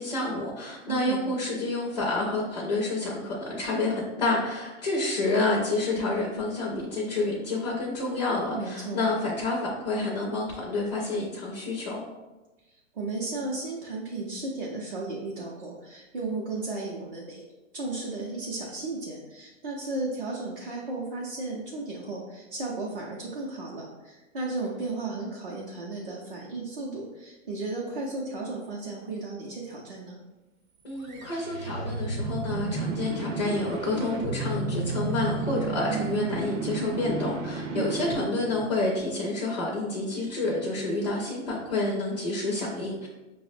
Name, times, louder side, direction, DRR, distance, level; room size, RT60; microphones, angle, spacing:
voice 1, 0.0-12.0 30.8-43.1, left 2 dB, 35° left, -4 dB, 0.4 m, -29 dB
voice 2, 0.9-1.3 8.5-9.0 12.7-17.4 17.7-30.2 37.7-38.2, right 2 dB, 45° right, -4 dB, 0.5 m, -34 dB
sound 1, 31.0-39.1, right 3 dB, 85° right, 0.7 m, -32 dB
5.6 x 2.0 x 2.5 m, 1.1 s
hypercardioid pair, 175°, 40 cm